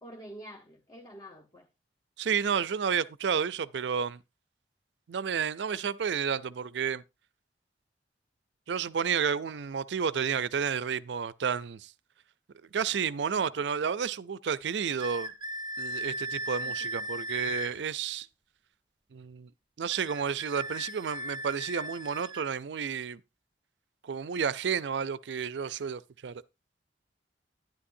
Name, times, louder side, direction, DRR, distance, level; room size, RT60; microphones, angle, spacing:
voice 1, 0.0-1.7 16.6-16.9, equal, 25° left, 1.0 m, -48 dB
voice 2, 2.2-4.2 5.1-7.0 8.7-11.9 12.7-15.3 15.8-18.3 19.1-19.5 19.8-23.2 24.0-26.4, right 7 dB, 75° right, 0.5 m, -31 dB
sound 1, 15.0-17.8 19.9-22.5, equal, 25° right, 0.6 m, -37 dB
11.5 x 10.5 x 2.6 m
head